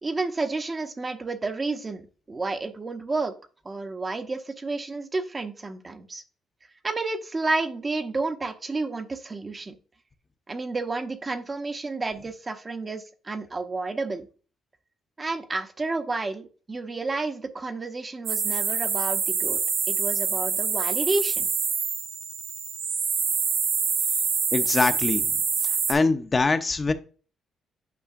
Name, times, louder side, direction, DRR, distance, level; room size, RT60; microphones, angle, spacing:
voice 1, 0.0-3.3 3.6-6.2 6.8-9.8 10.5-14.3 15.2-19.6 19.9-21.5, right 3 dB, 30° right, 7 dB, 0.8 m, -30 dB
sound 1, 18.3-25.9, right 6 dB, 85° right, 1.4 m, -26 dB
voice 2, 24.5-25.3 25.6-26.9, left 3 dB, 30° left, 8 dB, 0.6 m, -23 dB
8.4 x 5.5 x 2.5 m, 0.38 s
cardioid pair, 90°, 0 cm